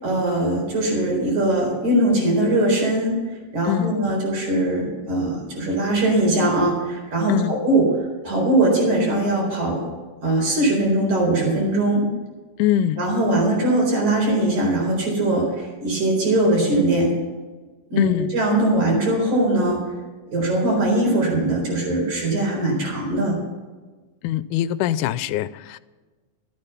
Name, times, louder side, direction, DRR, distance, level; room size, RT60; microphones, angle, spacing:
voice 1, 0.0-3.2 3.5-7.9 8.2-9.8 10.2-12.0 13.0-17.1 17.9-19.8 20.3-23.3, right 1 dB, 70° right, 5.7 m, -21 dB
voice 2, 3.6-4.0 7.3-7.6 12.6-13.1 18.0-18.4 24.2-25.8, left 12 dB, 85° left, 2.0 m, -23 dB
13.5 x 12.0 x 5.7 m
omnidirectional pair, 3.5 m